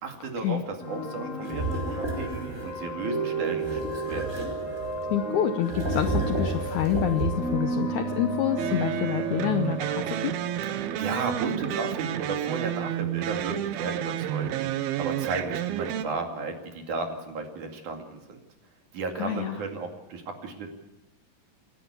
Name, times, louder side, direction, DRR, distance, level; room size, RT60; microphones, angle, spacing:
voice 1, 0.0-3.8 4.1-4.4 10.8-18.4 18.9-20.7, right 4 dB, 55° right, 4 dB, 3.6 m, -34 dB
sound 1, 0.8-12.4, right 2 dB, 45° left, 6.9 m, -34 dB
sound 2, 1.4-2.8 3.6-5.1 5.6-7.6, right 2 dB, 20° right, 5.1 m, -31 dB
voice 2, 5.1-10.3 19.2-19.6, left 10 dB, 75° left, 9 dB, 1.8 m, -27 dB
sound 3, 8.6-16.1, right 11 dB, 80° right, 2.8 m, -30 dB
28.0 x 11.5 x 8.3 m, 1.1 s
omnidirectional pair, 4.4 m